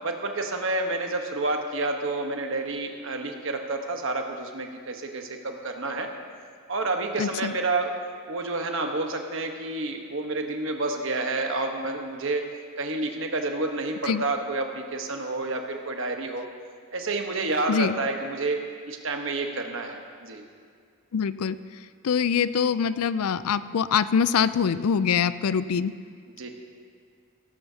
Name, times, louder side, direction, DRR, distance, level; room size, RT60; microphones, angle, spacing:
voice 1, 0.0-6.1 6.7-7.9 8.3-12.4 12.8-16.5 16.9-18.6 18.9-20.4 26.4-26.5, right 2 dB, 60° right, 3 dB, 1.2 m, -29 dB
voice 2, 7.2-7.5 14.1-14.2 17.7-17.9 21.1-21.6 22.0-25.9, left 7 dB, 80° left, 15 dB, 0.4 m, -24 dB
17.0 x 15.0 x 2.8 m, 2.1 s
head